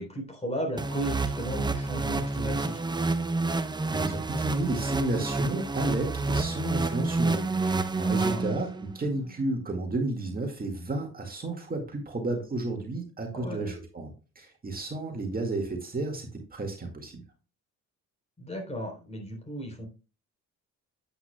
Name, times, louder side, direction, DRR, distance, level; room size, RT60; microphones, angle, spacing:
voice 1, 0.0-2.8 8.0-8.6 13.3-13.7 18.4-19.9, equal, 20° left, 3 dB, 3.7 m, -35 dB
sound 1, 0.8-8.9, right 3 dB, 15° right, 0.7 m, -29 dB
voice 2, 3.9-17.2, right 2 dB, 30° right, 2 dB, 2.0 m, -32 dB
9.6 x 8.3 x 2.3 m, 0.34 s
cardioid pair, 90°, 30 cm